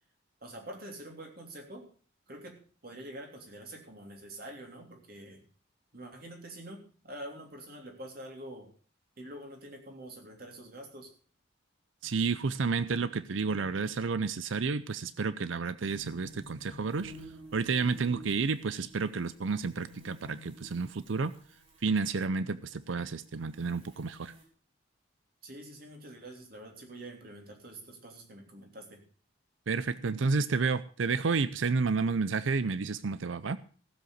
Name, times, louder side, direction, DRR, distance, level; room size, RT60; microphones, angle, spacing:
voice 1, 0.4-1.9 2.3-5.4 5.9-8.7 9.2-11.1 25.4-29.0, right 1 dB, 50° right, 2 dB, 3.3 m, -46 dB
voice 2, 12.0-17.1 17.5-21.3 21.8-24.3 29.7-33.6, right 4 dB, 80° right, 14 dB, 0.6 m, -30 dB
sound 1, 15.9-22.0 22.6-24.4, equal, 35° right, 5.3 m, -52 dB
15.0 x 7.9 x 6.5 m, 0.41 s
head